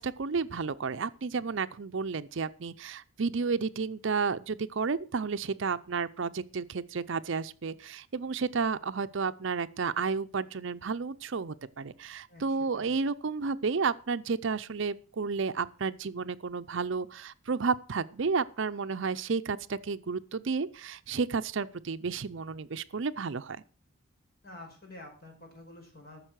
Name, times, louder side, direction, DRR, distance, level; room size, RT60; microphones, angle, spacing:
voice 1, 0.0-23.6, right 5 dB, 60° right, 0.5 m, -32 dB
voice 2, 12.3-13.0 24.4-26.2, left 2 dB, 45° left, 4.8 m, -49 dB
14.0 x 6.6 x 6.3 m
head